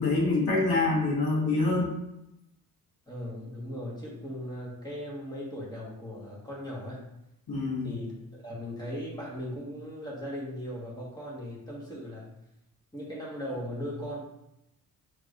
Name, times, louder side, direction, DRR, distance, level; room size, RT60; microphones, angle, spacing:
voice 1, 0.0-1.9 7.5-7.9, left 3 dB, 80° left, -4 dB, 1.4 m, -26 dB
voice 2, 3.1-7.0 7.8-12.3 12.9-14.2, equal, 10° left, -5 dB, 1.6 m, -38 dB
5.9 x 3.3 x 2.6 m, 0.87 s
cardioid pair, 90°, 36 cm